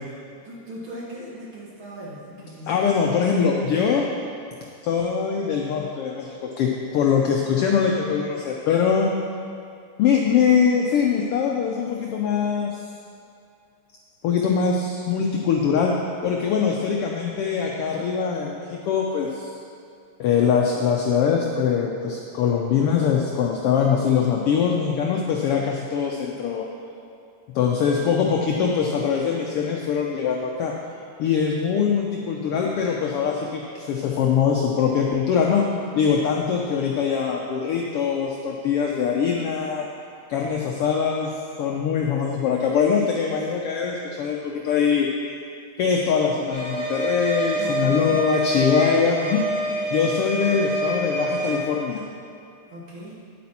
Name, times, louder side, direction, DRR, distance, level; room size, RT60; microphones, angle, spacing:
voice 1, 0.4-2.8 16.6-17.0 31.3-31.8 42.0-42.5 47.6-48.6 52.7-53.3, right 1 dB, 50° right, -5 dB, 1.8 m, -40 dB
voice 2, 2.7-4.1 4.8-9.1 10.0-12.8 14.2-15.9 16.2-19.5 20.2-26.7 27.5-30.7 31.2-35.7 35.9-39.9 40.3-45.1 45.8-49.4 49.9-52.0, left 6 dB, 90° left, 0 dB, 1.3 m, -22 dB
sound 1, 46.5-51.6, right 2 dB, 85° right, 3.8 m, -27 dB
9.5 x 8.5 x 4.2 m, 2.4 s
omnidirectional pair, 3.4 m